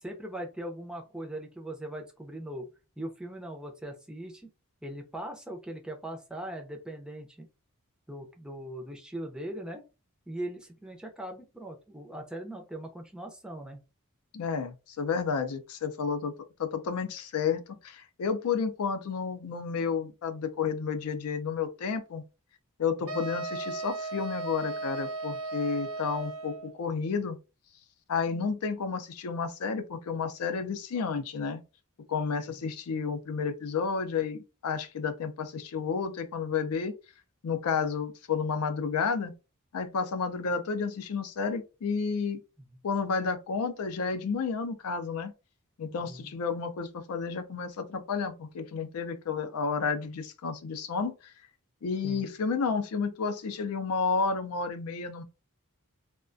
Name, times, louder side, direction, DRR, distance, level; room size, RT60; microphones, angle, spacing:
voice 1, 0.0-2.7 3.0-4.5 4.8-7.5 8.1-9.8 10.3-13.8 23.1-23.2 45.9-46.4 52.0-52.3, right 1 dB, 5° right, 0.4 m, -40 dB
voice 2, 14.3-16.3 16.6-22.2 22.8-27.4 28.1-31.6 32.1-36.9 37.4-39.3 39.7-42.4 42.8-45.3 45.8-51.3 51.8-55.2, left 5 dB, 85° left, 0.4 m, -31 dB
sound 1, 23.1-26.7, right 3 dB, 70° right, 0.6 m, -36 dB
2.3 x 2.1 x 2.5 m
head